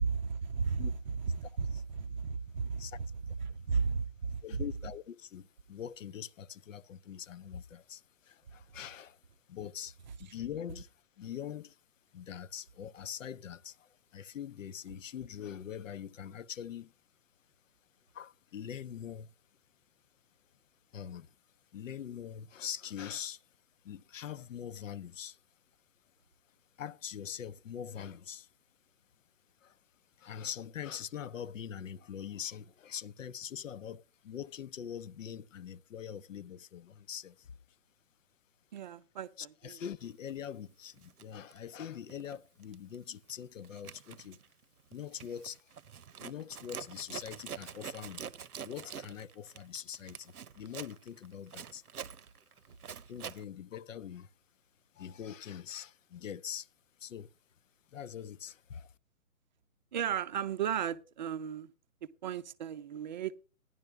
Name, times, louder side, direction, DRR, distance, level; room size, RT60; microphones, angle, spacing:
voice 1, 0.0-3.1 3.4-4.4 38.7-39.8 59.9-61.7 62.2-63.3, right 6 dB, 30° right, 0.6 m, -34 dB
voice 2, 4.4-9.2 9.5-11.8 12.1-16.9 18.1-19.3 20.9-21.3 21.7-23.4 23.8-25.4 26.8-28.5 29.6-29.8 30.2-37.6 39.4-44.4 44.9-45.7 46.2-48.2 48.6-51.8 53.1-54.3 54.9-56.7 57.0-57.3 57.9-58.9, left 9 dB, 60° left, 0.8 m, -43 dB
Zipper (clothing), 40.3-40.5 41.0-42.4 42.6-43.0 43.3-53.4, right 8 dB, 80° right, 0.9 m, -46 dB
16.5 x 11.0 x 3.2 m
hypercardioid pair, 145°, 44 cm